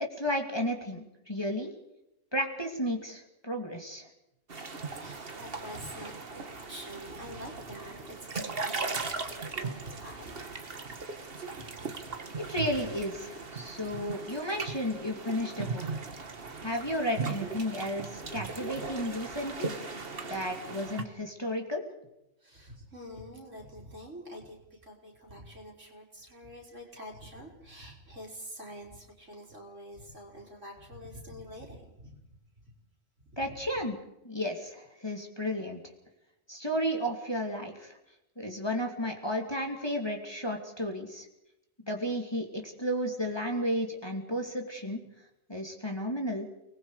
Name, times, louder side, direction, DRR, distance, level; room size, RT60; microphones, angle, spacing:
voice 1, 0.2-1.7 2.3-4.1 12.4-15.8 16.6-19.7 20.3-21.8 33.4-34.0 34.2-35.8 36.5-38.0 38.4-41.3 41.8-45.0 45.5-46.5, equal, 20° left, 1 dB, 2.7 m, -33 dB
sound 1, 4.5-21.0, right 4 dB, 45° right, 1.8 m, -38 dB
voice 2, 4.8-10.4 11.5-11.7 12.1-12.2 22.4-32.2 33.2-33.6, equal, 60° right, -1 dB, 4.9 m, -46 dB
30.0 x 20.5 x 5.0 m, 0.86 s
omnidirectional pair, 1.4 m